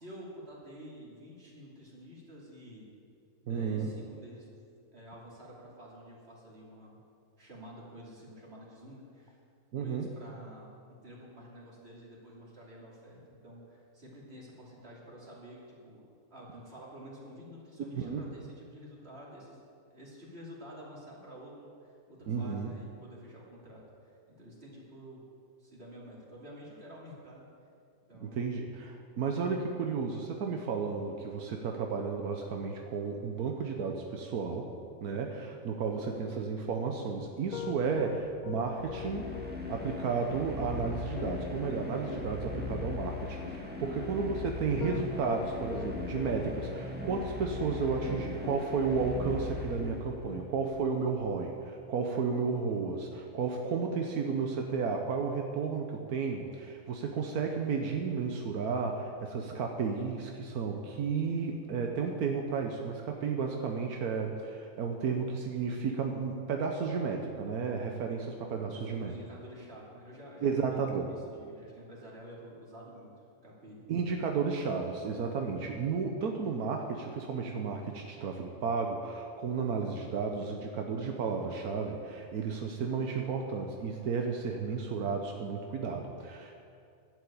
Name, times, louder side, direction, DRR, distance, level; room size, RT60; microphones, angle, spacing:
voice 1, 0.0-2.9 3.4-4.5 4.9-7.0 7.4-9.4 9.8-16.0 16.3-19.6 19.9-25.2 25.6-27.5 28.1-28.5 35.1-35.4 43.8-44.2 68.7-73.1 73.4-73.8, equal, 45° right, -4 dB, 3.1 m, -50 dB
voice 2, 3.5-3.9 9.7-10.1 17.9-18.2 22.3-22.7 28.2-34.7 35.0-39.3 39.7-69.1 70.4-71.1 73.9-86.5, right 5 dB, 85° right, 2 dB, 1.4 m, -33 dB
Piano, 37.2-51.4, left 9 dB, 75° left, 1.0 m, -42 dB
sound 1, 38.6-50.3, left 3 dB, 5° right, 1.3 m, -39 dB
11.5 x 8.0 x 8.7 m, 2.4 s
omnidirectional pair, 1.5 m